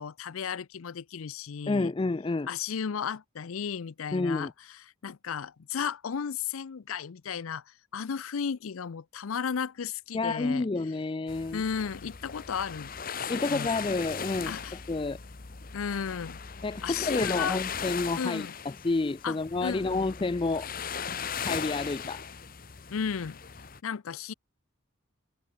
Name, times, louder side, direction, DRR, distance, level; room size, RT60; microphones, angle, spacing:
voice 1, 0.0-1.9 2.5-10.7 11.5-12.9 13.2-13.9 14.4-14.8 15.7-16.4 16.8-17.6 18.2-18.5 19.2-20.1 22.9-23.4 23.8-24.3, left 6 dB, 80° left, 0.5 m, -34 dB
voice 2, 1.7-2.5 4.1-4.5 10.1-11.6 13.3-14.5 14.9-15.2 16.6-18.5 18.8-20.7 21.3-22.2, left 3 dB, 25° left, 0.3 m, -29 dB
sound 1, 11.3-23.8, left 6 dB, 40° left, 0.9 m, -38 dB
head